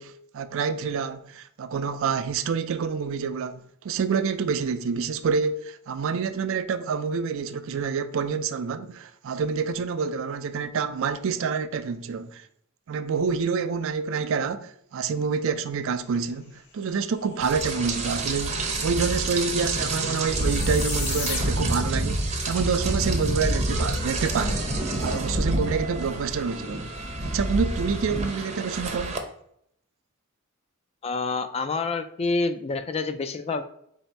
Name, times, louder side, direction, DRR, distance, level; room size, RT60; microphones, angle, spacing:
voice 1, 0.0-12.5 12.9-24.6 25.0-26.9 27.2-29.2, right 5 dB, 65° right, 0.4 m, -27 dB
sound 1, 17.4-17.5 17.7-21.9, left 4 dB, 55° left, 1.1 m, -36 dB
Rain, 17.4-29.2, right 2 dB, 35° right, 0.7 m, -28 dB
voice 2, 31.0-33.6, left 3 dB, 30° left, 0.4 m, -27 dB
4.1 x 2.7 x 4.4 m
head